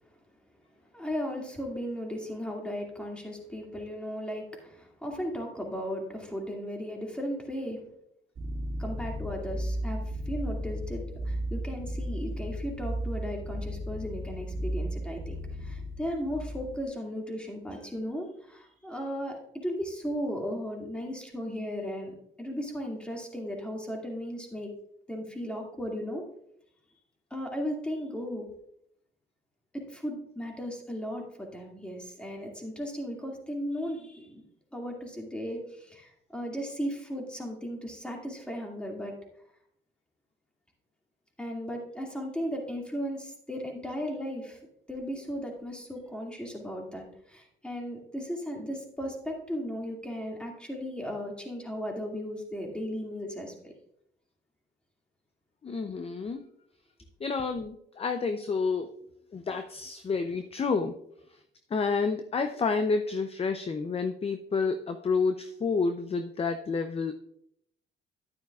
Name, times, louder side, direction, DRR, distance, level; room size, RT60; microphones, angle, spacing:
voice 1, 0.9-7.8 8.8-10.0 10.3-24.7 25.1-26.2 27.3-28.5 29.7-34.4 34.7-39.2 41.4-44.6 44.9-53.7, equal, 5° left, 0 dB, 2.3 m, -36 dB
sound 1, 8.3-16.8, equal, 50° right, 2.2 m, -34 dB
voice 2, 55.6-56.4 57.2-58.9 59.3-60.9 61.7-67.1, left 4 dB, 30° left, 8 dB, 0.6 m, -29 dB
10.5 x 9.2 x 2.4 m, 0.73 s
cardioid pair, 90°, 20 cm